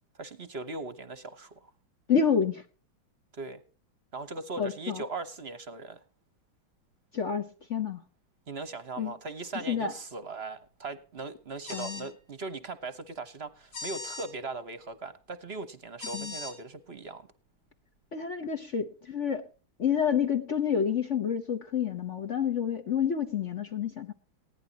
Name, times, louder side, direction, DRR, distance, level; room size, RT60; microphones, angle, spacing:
voice 1, 0.2-1.7 3.3-3.6 4.1-6.0 8.5-17.3, right 3 dB, 40° right, 12 dB, 1.0 m, -39 dB
voice 2, 2.1-2.6 4.6-5.0 7.1-8.0 9.0-9.1 9.5-9.9 11.7-12.1 16.1-16.3 18.1-19.4 19.8-24.1, left 7 dB, 45° left, 5 dB, 1.2 m, -29 dB
Air horn, 11.7-12.1 13.7-14.3 16.0-16.5, left 2 dB, 65° left, 5.5 m, -39 dB
20.0 x 16.0 x 2.9 m, 0.36 s
omnidirectional pair, 2.2 m